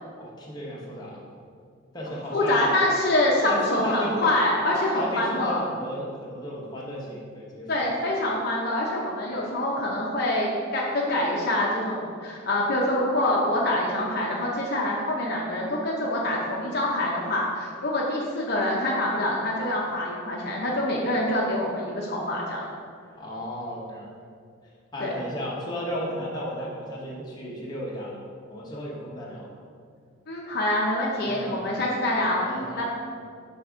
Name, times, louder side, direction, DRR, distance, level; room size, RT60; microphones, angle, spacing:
voice 1, 0.2-1.2 1.9-2.7 3.4-4.3 4.6-7.7 23.2-24.1 24.9-28.2 28.5-29.5 31.2-31.8 32.4-32.9, equal, 20° left, -5 dB, 0.9 m, -34 dB
voice 2, 2.3-5.6 7.7-22.6 25.0-25.1 30.3-32.9, left 1 dB, 50° left, -3 dB, 0.6 m, -25 dB
5.8 x 3.4 x 4.9 m, 2.2 s
head